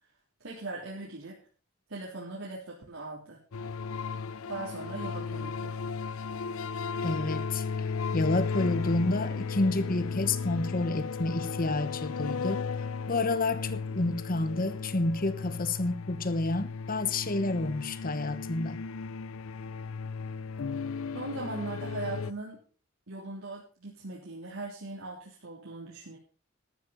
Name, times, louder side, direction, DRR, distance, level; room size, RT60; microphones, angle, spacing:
voice 1, 0.4-1.4 1.9-3.4 4.5-5.8 21.1-22.6 23.1-26.2, right 2 dB, 70° right, 3.5 m, -39 dB
sound 1, 3.5-22.3, left 5 dB, 85° left, 0.6 m, -35 dB
voice 2, 7.0-12.6 13.1-18.8, left 2 dB, 45° left, 1.1 m, -29 dB
13.5 x 12.0 x 4.1 m
head